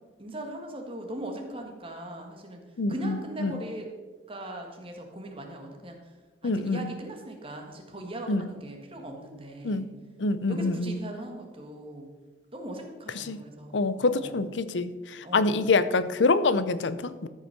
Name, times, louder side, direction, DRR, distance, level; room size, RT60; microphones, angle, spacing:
voice 1, 0.2-2.6 2.9-3.9 4.3-6.1 6.4-9.9 10.5-12.1 12.5-14.5 15.2-15.7, right 1 dB, 30° right, 2 dB, 1.7 m, -39 dB
voice 2, 2.8-3.1 3.4-3.5 6.4-6.8 8.3-8.4 9.6-9.9 10.2-11.0 13.3-13.4 13.7-14.9 15.3-17.3, left 3 dB, 80° left, 14 dB, 0.6 m, -25 dB
13.0 x 5.6 x 5.9 m, 1.3 s
head